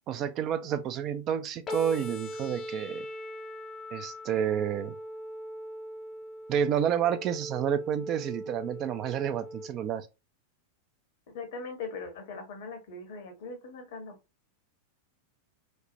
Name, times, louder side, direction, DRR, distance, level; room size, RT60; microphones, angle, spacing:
voice 1, 0.1-3.1 3.9-4.9 6.5-10.1, right 9 dB, 35° right, 0.3 m, -29 dB
sound 1, 1.7-9.7, left 1 dB, 25° left, 0.5 m, -40 dB
voice 2, 11.3-14.2, left 4 dB, 55° left, 0.9 m, -40 dB
3.2 x 2.0 x 2.7 m
figure-of-eight pair, 90°, 0 cm